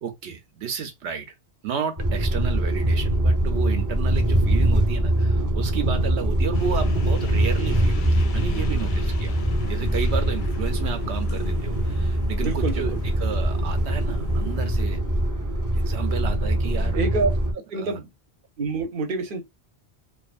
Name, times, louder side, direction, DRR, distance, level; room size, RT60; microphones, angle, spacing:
voice 1, 0.0-1.3 1.6-9.3 9.6-15.0 15.7-17.0 17.8-18.0, right 7 dB, 80° right, 0.9 m, -32 dB
sound 1, 2.0-17.5, right 1 dB, 20° right, 0.6 m, -23 dB
sound 2, 6.5-14.8, left 3 dB, 60° left, 0.6 m, -34 dB
voice 2, 12.4-13.0 16.9-17.3 17.7-18.1 18.6-19.4, right 3 dB, 55° right, 0.8 m, -26 dB
2.5 x 2.4 x 2.4 m
omnidirectional pair, 1.1 m